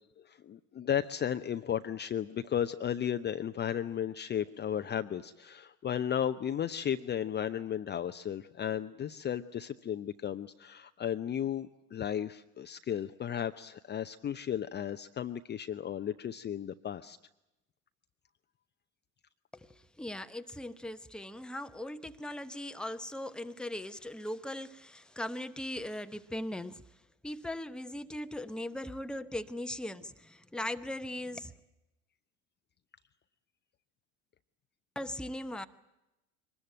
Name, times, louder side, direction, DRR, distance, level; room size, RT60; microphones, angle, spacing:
voice 1, 0.2-17.2, left 9 dB, 25° left, 9 dB, 0.8 m, -34 dB
voice 2, 19.5-26.8 27.2-31.5 34.9-35.7, left 1 dB, ahead, 10 dB, 1.0 m, -39 dB
23.5 x 20.0 x 9.0 m, 0.94 s
figure-of-eight pair, 70°, 41 cm